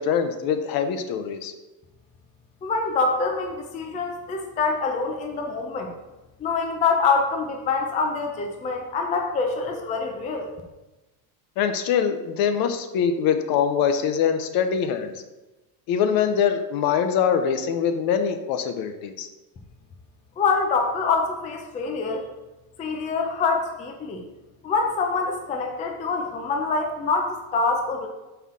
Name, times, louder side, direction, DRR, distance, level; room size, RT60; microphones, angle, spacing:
voice 1, 0.0-1.5 11.6-15.1 15.9-19.3, left 7 dB, 55° left, 8 dB, 0.7 m, -23 dB
voice 2, 2.6-5.9 6.4-10.5 20.4-22.3 22.8-24.2 24.6-28.1, left 4 dB, 20° left, 2 dB, 0.4 m, -25 dB
5.8 x 5.7 x 3.6 m, 1.1 s
cardioid pair, 175°, 44 cm